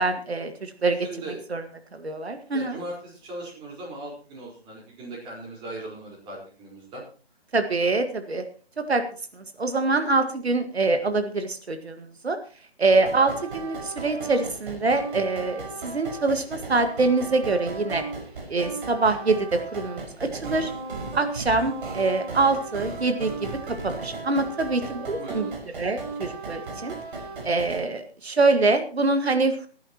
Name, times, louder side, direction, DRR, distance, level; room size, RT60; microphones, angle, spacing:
voice 1, 0.0-1.0 1.5-1.6 1.9-2.8 7.5-8.4 8.8-9.0 9.4-12.4 12.8-18.0 18.5-20.7 21.1-23.5 23.8-25.5 25.8-26.9 27.4-29.7, right 3 dB, 80° right, 7 dB, 1.9 m, -24 dB
voice 2, 0.9-1.4 2.5-7.0 12.9-13.1 24.7-25.5, right 1 dB, 15° right, -2 dB, 4.6 m, -39 dB
sound 1, 13.1-27.8, right 3 dB, 55° right, 5.8 m, -36 dB
23.0 x 11.0 x 3.0 m, 0.38 s
figure-of-eight pair, 150°, 31 cm